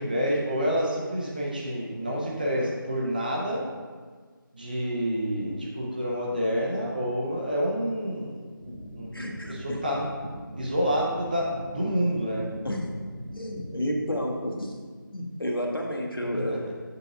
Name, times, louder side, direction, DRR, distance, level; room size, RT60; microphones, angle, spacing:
voice 1, 0.0-3.6 4.5-8.4 9.0-9.2 9.5-10.1 10.6-12.5 16.3-16.7, equal, 25° right, -4 dB, 0.7 m, -28 dB
sound 1, 8.6-14.0, equal, 55° right, 1.2 m, -41 dB
voice 2, 9.1-9.5 12.6-12.9 13.3-14.7 15.1-16.6, equal, 85° left, 0 dB, 1.2 m, -30 dB
6.9 x 6.6 x 2.5 m, 1.5 s
figure-of-eight pair, 165°, 12 cm